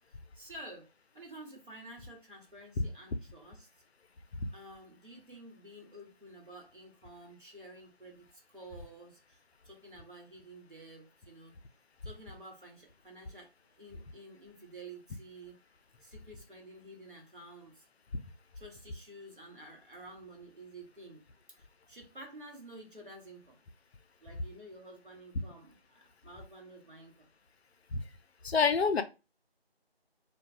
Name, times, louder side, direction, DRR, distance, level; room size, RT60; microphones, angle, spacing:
voice 1, 0.1-0.9 1.1-3.7 4.5-8.3 8.5-11.6 12.0-13.5 13.8-15.6 16.0-17.9 18.5-21.2 21.6-23.6 24.2-27.3, right 1 dB, 55° right, 1.1 m, -51 dB
voice 2, 28.4-29.0, left 5 dB, 80° left, 0.5 m, -27 dB
2.3 x 2.2 x 2.7 m
figure-of-eight pair, 175°, 32 cm